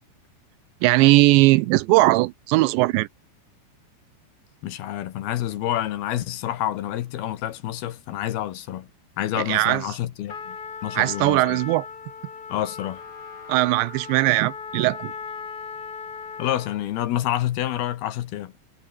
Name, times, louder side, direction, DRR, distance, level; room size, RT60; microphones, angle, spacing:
voice 1, 0.8-3.1 9.4-9.9 11.0-11.9 13.5-15.1, right 20 dB, 85° right, 2.9 m, -19 dB
voice 2, 4.6-8.9 9.2-10.6 10.8-11.6 12.5-13.0 16.4-18.5, left 12 dB, 70° left, 2.9 m, -28 dB
Trumpet, 10.3-16.9, left 5 dB, 40° left, 1.4 m, -38 dB
omnidirectional pair, 5.2 m